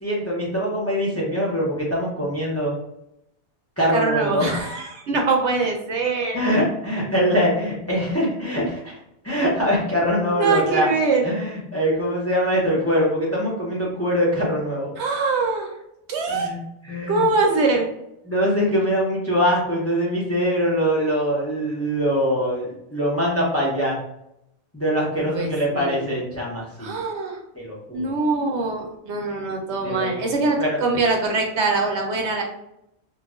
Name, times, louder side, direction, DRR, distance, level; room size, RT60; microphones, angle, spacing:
voice 1, 0.0-2.7 3.8-4.6 6.3-8.9 9.2-10.9 11.2-14.9 16.3-16.6 16.8-17.2 18.3-24.0 24.7-26.9 27.5-28.1 29.8-30.8, equal, 15° left, -5 dB, 0.5 m, -23 dB
voice 2, 3.9-6.4 10.3-11.3 15.0-15.7 16.1-16.5 17.1-17.9 25.2-26.0 26.8-27.4 27.9-32.4, right 3 dB, 85° right, 1 dB, 1.0 m, -23 dB
2.3 x 2.0 x 3.5 m, 0.81 s
omnidirectional pair, 1.1 m